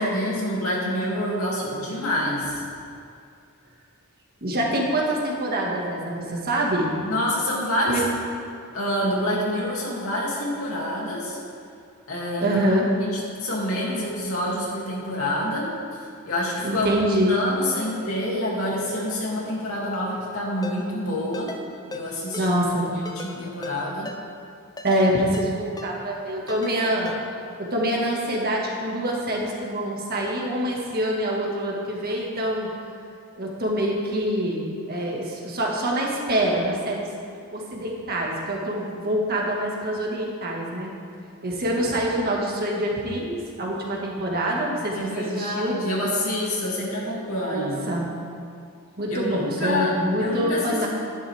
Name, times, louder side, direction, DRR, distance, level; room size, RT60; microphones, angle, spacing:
voice 1, 0.0-2.6 7.0-8.0 8.7-11.4 12.1-12.6 13.0-15.7 16.3-21.5 21.9-22.5 23.0-24.1 44.5-44.6 44.9-47.9 49.1-49.9 50.2-50.9, left 1 dB, 75° left, -5 dB, 2.8 m, -27 dB
voice 2, 4.4-6.9 7.9-8.0 12.4-12.9 16.6-17.4 22.4-22.9 24.8-27.2 27.6-32.7 33.4-37.1 37.5-40.9 41.4-45.8 47.4-48.1 49.0-50.9, right 1 dB, 45° right, -2 dB, 1.9 m, -25 dB
Ringtone, 20.6-20.8 21.3-21.6 21.9-22.0 22.3-22.5 23.1-23.3 23.6-23.8 24.1-24.2 24.8-25.0 25.3-25.5 25.8-25.9 26.5-26.7 27.1-27.2, left 2 dB, 20° left, 0.7 m, -36 dB
12.0 x 11.0 x 3.6 m, 2.3 s
head